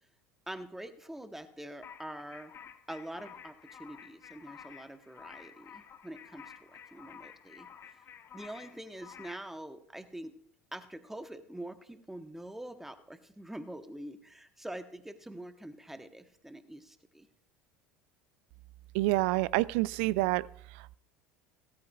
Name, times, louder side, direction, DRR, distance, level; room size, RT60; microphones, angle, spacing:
voice 1, 0.5-2.5 2.9-8.0 8.3-10.4 10.7-17.3, right 1 dB, 5° right, 10 dB, 1.1 m, -45 dB
sound 1, 1.8-9.5, left 8 dB, 35° left, 1.0 m, -52 dB
voice 2, 18.9-20.5, right 20 dB, 60° right, 22 dB, 0.3 m, -27 dB
16.0 x 13.5 x 2.4 m, 0.68 s
figure-of-eight pair, 70°, 7 cm